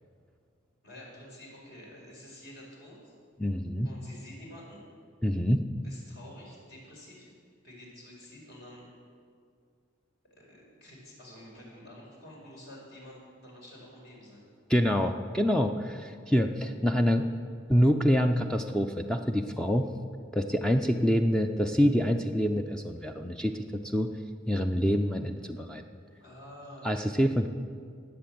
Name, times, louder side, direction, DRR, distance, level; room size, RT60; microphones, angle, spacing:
voice 1, 0.8-3.1 3.8-4.8 5.8-7.3 7.6-8.9 10.3-14.5 26.2-27.2, left 1 dB, 60° left, -3 dB, 5.1 m, -49 dB
voice 2, 3.4-3.9 5.2-5.7 14.7-17.3 17.7-19.9 20.3-23.6 23.9-24.1 24.5-25.8 26.8-27.5, equal, 5° left, 5 dB, 0.5 m, -26 dB
19.0 x 7.8 x 7.6 m, 2.2 s
head